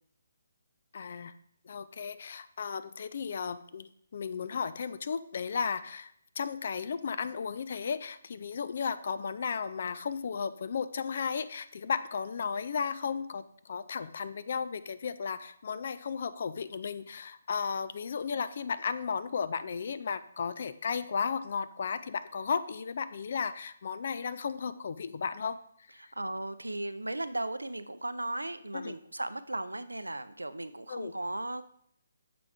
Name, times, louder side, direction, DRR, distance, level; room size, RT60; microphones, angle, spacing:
voice 1, 0.9-1.3 1.6-25.6 26.0-26.1 28.7-29.0 30.9-31.1, left 6 dB, 50° left, 13 dB, 0.4 m, -34 dB
voice 2, 26.0-31.6, right 1 dB, 85° right, 12 dB, 0.4 m, -36 dB
6.9 x 4.8 x 3.3 m, 0.67 s
figure-of-eight pair, 140°, 0 cm